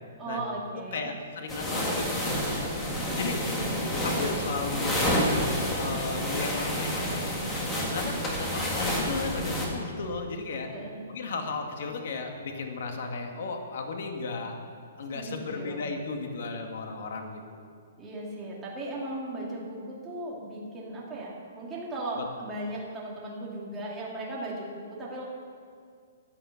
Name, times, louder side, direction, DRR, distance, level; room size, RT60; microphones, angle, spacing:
voice 1, 0.2-1.1 3.1-3.8 7.8-8.1 10.7-11.0 15.1-15.9 18.0-25.2, right 1 dB, 10° right, -5 dB, 2.5 m, -37 dB
voice 2, 0.9-2.3 3.2-3.4 4.0-5.2 5.8-7.3 7.9-10.7 11.1-14.6 15.0-17.6 22.2-22.3, left 4 dB, 55° left, 3 dB, 1.9 m, -35 dB
sound 1, 1.5-9.7, equal, 10° left, 1.8 m, -29 dB
15.0 x 9.1 x 7.1 m, 2.1 s
hypercardioid pair, 170°, 0 cm